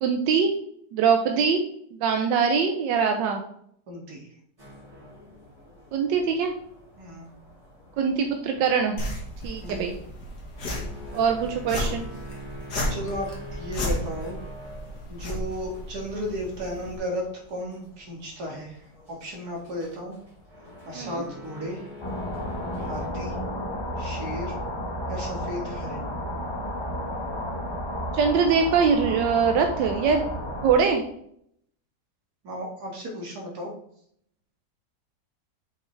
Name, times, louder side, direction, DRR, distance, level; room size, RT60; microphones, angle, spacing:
voice 1, 0.0-0.6 0.9-1.6 2.0-3.4 5.9-6.5 8.0-9.0 9.4-9.9 11.1-12.1 21.0-21.2 28.1-30.3 30.6-31.0, right 6 dB, 90° right, 4 dB, 1.3 m, -22 dB
voice 2, 3.9-4.3 7.0-7.3 9.6-9.9 12.9-14.4 15.1-18.8 19.1-20.2 20.9-21.9 22.8-23.4 24.0-24.5 25.1-26.1 32.4-33.7, equal, 60° right, -1 dB, 2.2 m, -34 dB
sound 1, 4.6-23.1, left 1 dB, 20° right, 2.9 m, -46 dB
sound 2, 9.0-17.0, equal, 65° left, 2.1 m, -34 dB
sound 3, 22.0-30.8, equal, 20° left, 0.9 m, -32 dB
6.5 x 5.9 x 3.2 m, 0.68 s
omnidirectional pair, 1.9 m